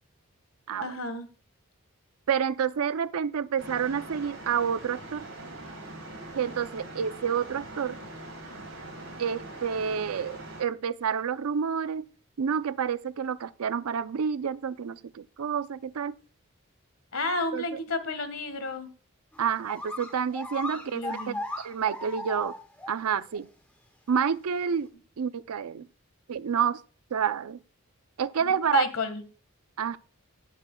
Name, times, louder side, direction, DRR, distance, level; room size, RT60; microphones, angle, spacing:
voice 1, 0.8-1.3 17.1-18.9 20.9-21.4 28.4-29.2, left 3 dB, 80° left, 1.5 m, -31 dB
voice 2, 2.3-5.2 6.3-8.0 9.2-12.1 12.4-16.1 17.5-17.8 19.4-22.5 22.9-23.5 24.1-24.9 25.2-25.9 26.3-26.8 27.1-27.6 28.2-28.9 29.8-30.0, right 7 dB, 85° right, 0.5 m, -29 dB
sound 1, 3.6-10.6, right 2 dB, 55° right, 4.6 m, -42 dB
sound 2, 19.3-19.4 19.7-22.9 23.3-23.4 24.2-24.3, left 1 dB, 5° left, 1.4 m, -37 dB
18.5 x 7.3 x 2.2 m
head